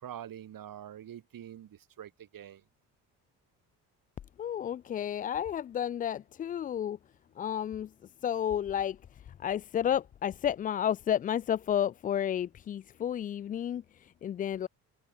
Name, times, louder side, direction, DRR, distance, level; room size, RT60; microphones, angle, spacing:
voice 1, 0.0-2.6, right 10 dB, 45° right, 3.1 m, -45 dB
voice 2, 4.4-7.0 7.4-7.9 8.2-14.7, left 9 dB, 20° left, 0.3 m, -32 dB
open air
figure-of-eight pair, 50°, 45 cm